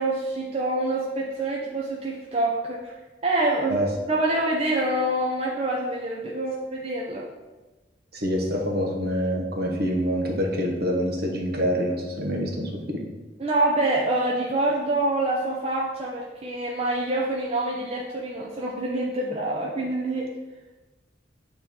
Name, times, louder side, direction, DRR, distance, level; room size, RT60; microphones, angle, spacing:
voice 1, 0.0-2.9 3.2-3.8 4.1-7.3 13.4-20.3, right 2 dB, 30° right, -3 dB, 0.5 m, -26 dB
voice 2, 8.1-13.1, equal, 55° right, 0 dB, 1.0 m, -26 dB
8.7 x 3.1 x 3.6 m, 1.2 s
head